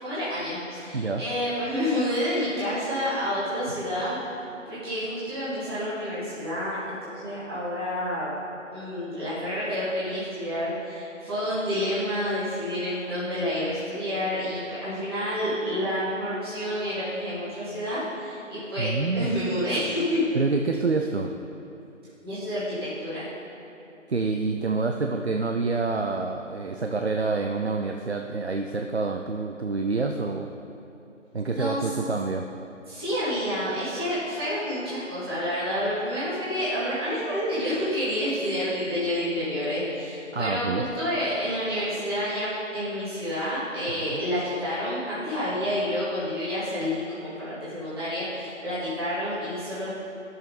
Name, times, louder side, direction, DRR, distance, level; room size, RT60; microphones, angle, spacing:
voice 1, 0.0-4.2 4.7-8.3 8.7-20.3 22.2-23.3 31.5-31.9 32.9-49.9, equal, 20° right, -13 dB, 2.4 m, -29 dB
voice 2, 18.8-19.4 20.3-21.3 24.1-30.5 31.3-32.5 40.3-40.8 44.1-44.2, right 3 dB, 55° right, 4 dB, 0.6 m, -27 dB
15.0 x 7.0 x 4.1 m, 2.9 s
figure-of-eight pair, 165°, 39 cm